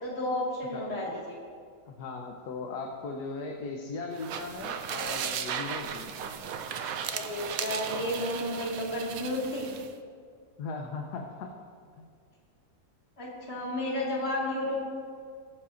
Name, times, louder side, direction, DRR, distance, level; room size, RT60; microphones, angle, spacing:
voice 1, 0.0-1.4 7.1-9.7 13.2-14.7, left 1 dB, 40° left, -4 dB, 2.2 m, -32 dB
voice 2, 1.9-6.5 10.6-11.5 12.0-12.1, left 4 dB, 80° left, 1 dB, 1.4 m, -38 dB
sound 1, 4.1-9.9, right 7 dB, 70° right, 1.0 m, -36 dB
20.5 x 7.6 x 2.6 m, 2.1 s
omnidirectional pair, 1.7 m